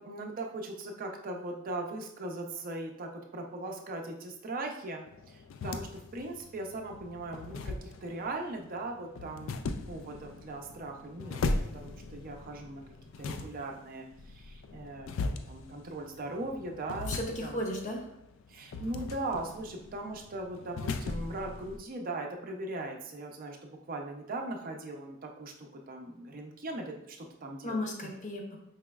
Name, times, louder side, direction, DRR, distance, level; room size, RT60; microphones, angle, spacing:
voice 1, 0.0-9.6 9.9-12.8 13.2-17.1 17.4-17.6 18.5-27.9, right 2 dB, 45° right, 2 dB, 0.5 m, -39 dB
sound 1, 5.1-21.8, left 3 dB, 70° left, 0.3 m, -39 dB
voice 2, 17.0-18.1 27.6-28.6, left 1 dB, 40° left, 1 dB, 0.6 m, -35 dB
4.7 x 3.0 x 2.3 m, 0.75 s
head